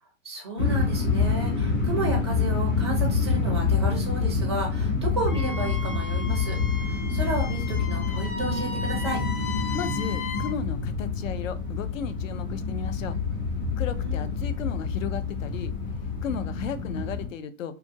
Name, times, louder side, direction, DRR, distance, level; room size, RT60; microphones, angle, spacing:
voice 1, 0.2-9.2 14.0-14.3, right 2 dB, 20° right, -2 dB, 0.4 m, -33 dB
sound 1, 0.6-17.3, left 4 dB, 40° left, 0.9 m, -27 dB
Wind instrument woodwind instrument, 5.3-10.5, left 4 dB, 85° left, 0.9 m, -36 dB
voice 2, 9.7-13.2 13.8-15.7 16.2-17.8, left 6 dB, 65° left, 12 dB, 0.5 m, -34 dB
2.7 x 2.4 x 2.7 m, 0.33 s
hypercardioid pair, 165°, 42 cm